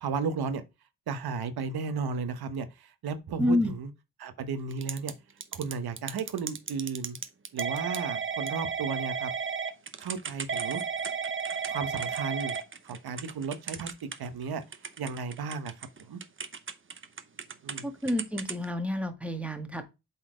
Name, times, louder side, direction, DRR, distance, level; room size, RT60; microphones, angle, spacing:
voice 1, 0.0-0.6 1.1-3.9 4.2-5.1 5.5-7.2 7.5-9.3 10.0-10.8 11.7-12.6 12.8-13.9 14.2-14.6 15.0-16.2 17.6-17.9, right 5 dB, 85° right, 1.2 m, -34 dB
voice 2, 3.4-3.7 17.8-19.8, left 1 dB, 5° right, 1.8 m, -29 dB
Typing / Telephone, 4.7-5.1 5.4-14.4 14.7-17.8 18.1-18.6, right 6 dB, 35° right, 0.9 m, -34 dB
8.0 x 4.4 x 5.1 m
cardioid pair, 75°, 37 cm